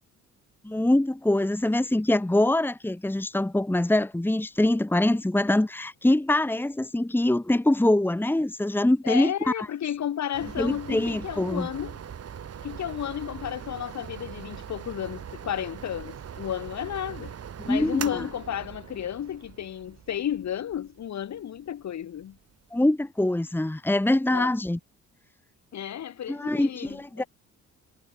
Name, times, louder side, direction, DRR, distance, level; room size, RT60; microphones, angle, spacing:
voice 1, 0.6-9.3 9.6-9.7 10.6-11.7 17.6-18.0 22.7-24.8 26.3-27.2, left 1 dB, 5° left, 1.7 m, -24 dB
voice 2, 9.0-12.0 12.6-17.3 17.6-22.4 24.3-24.5 25.7-27.3, left 10 dB, 65° left, 6.1 m, -33 dB
sound 1, 10.3-22.8, right 8 dB, 55° right, 4.8 m, -41 dB
cardioid pair, 90°, 30 cm